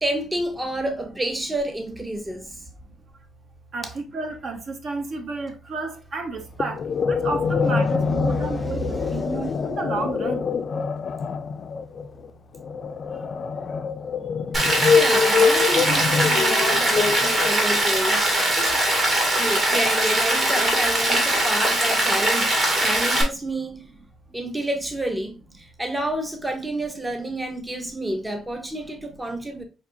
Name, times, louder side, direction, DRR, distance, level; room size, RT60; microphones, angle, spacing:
voice 1, 0.0-2.6 8.3-9.5 13.1-13.3 14.9-18.5 19.3-23.9 24.3-29.6, right 1 dB, 15° right, 0.6 m, -29 dB
voice 2, 3.7-6.8 7.1-8.8 9.1-10.4, right 3 dB, 60° right, 0.9 m, -31 dB
sound 1, 6.6-17.9, left 5 dB, 50° left, 0.3 m, -24 dB
Rain, 14.5-23.2, right 1 dB, 40° right, 1.9 m, -21 dB
5.8 x 2.7 x 2.6 m
cardioid pair, 90°, 0 cm